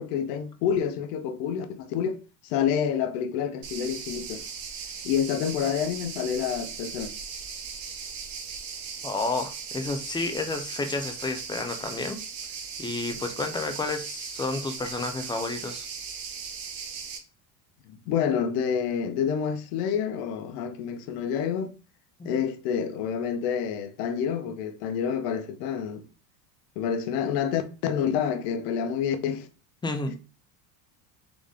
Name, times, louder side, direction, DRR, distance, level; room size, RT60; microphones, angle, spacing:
voice 1, 0.0-4.4 5.0-7.1 17.9-21.7 22.2-26.0 26.8-29.5, left 8 dB, 70° left, 0.9 m, -28 dB
sound 1, 3.6-17.2, right 6 dB, 45° right, 1.0 m, -38 dB
voice 2, 9.0-12.2 12.8-15.9 22.2-22.4 29.8-30.2, left 3 dB, 10° left, 0.4 m, -31 dB
4.0 x 3.4 x 3.6 m
supercardioid pair, 125°, 48 cm